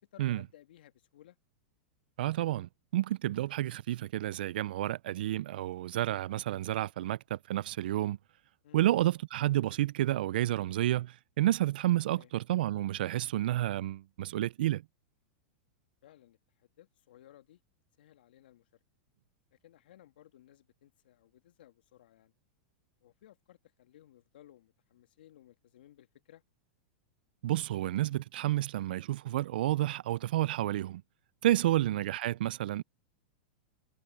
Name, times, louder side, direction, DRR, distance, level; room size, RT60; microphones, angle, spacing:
voice 1, 0.1-1.4 8.6-8.9 12.0-12.3 16.0-17.6 18.0-18.6 19.5-22.3 23.0-26.4 31.6-31.8, left 12 dB, 80° left, 2.2 m, -59 dB
voice 2, 2.2-8.2 8.7-14.8 27.4-31.0 31.4-32.8, right 14 dB, 75° right, 0.4 m, -30 dB
supercardioid pair, 135°, 5 cm